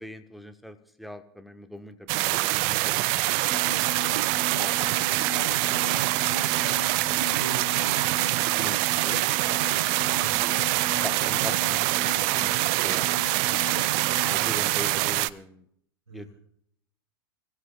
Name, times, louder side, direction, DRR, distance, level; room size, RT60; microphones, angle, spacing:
voice 1, 0.0-3.2 4.6-5.3 8.6-9.4 9.7-10.2 11.0-13.4 14.3-15.6 16.1-16.2, left 1 dB, ahead, 8 dB, 1.3 m, -41 dB
sound 1, 2.1-15.3, right 19 dB, 45° right, 0.5 m, -25 dB
voice 2, 2.6-3.2 5.4-8.3 9.9-10.3 16.1-16.3, right 4 dB, 75° right, 0 dB, 5.4 m, -44 dB
sound 2, 3.5-14.5, equal, 20° right, 5.6 m, -39 dB
29.0 x 16.5 x 2.4 m, 0.68 s
figure-of-eight pair, 90°, 14 cm